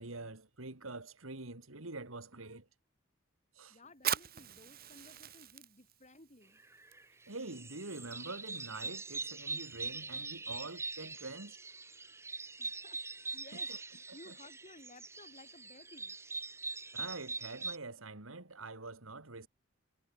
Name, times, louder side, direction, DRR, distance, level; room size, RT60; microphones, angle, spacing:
voice 1, 0.0-2.7 3.5-3.8 7.3-11.6 13.5-13.8 14.1-14.3 16.9-19.5, right 3 dB, 85° right, 2.8 m, -45 dB
voice 2, 3.7-6.6 12.6-13.7 14.1-16.2, left 2 dB, 35° left, 3.9 m, -57 dB
Fire, 3.9-11.1, right 10 dB, 45° right, 4.3 m, -44 dB
sound 1, 6.6-7.0 7.4-17.8, right 4 dB, 15° right, 1.5 m, -43 dB
head